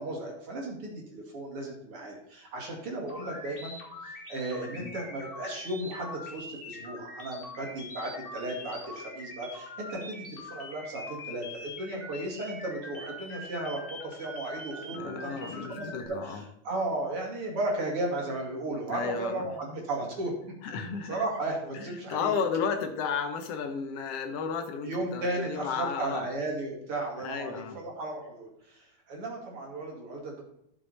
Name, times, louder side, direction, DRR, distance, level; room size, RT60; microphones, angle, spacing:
voice 1, 0.0-3.7 4.0-15.9 16.2-20.3 21.1-22.4 24.8-30.4, right 2 dB, 45° right, -1 dB, 3.1 m, -35 dB
sound 1, 3.1-16.0, left 1 dB, 25° left, 1.5 m, -44 dB
voice 2, 14.9-16.4 18.9-19.8 20.6-21.3 21.7-26.3 27.2-27.8, left 6 dB, 75° left, 7 dB, 1.4 m, -33 dB
12.0 x 6.8 x 4.2 m, 0.77 s
omnidirectional pair, 3.7 m